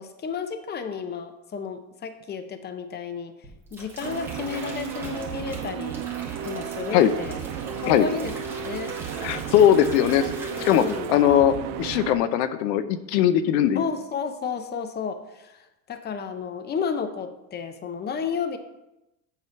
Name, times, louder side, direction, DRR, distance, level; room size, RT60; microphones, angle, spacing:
voice 1, 0.0-3.3 3.7-6.0 6.4-7.4 7.8-8.3 8.6-8.9 10.6-11.1 13.7-18.6, left 6 dB, 20° left, 8 dB, 0.7 m, -32 dB
sound 1, 3.4-11.4 11.7-12.1, right 1 dB, 5° right, 2.2 m, -41 dB
sound 2, 4.0-12.1, right 9 dB, 75° right, 0.9 m, -34 dB
voice 2, 9.2-10.3 10.6-13.8, left 10 dB, 80° left, 12 dB, 0.8 m, -20 dB
7.8 x 5.0 x 5.8 m, 0.91 s
supercardioid pair, 115°, 49 cm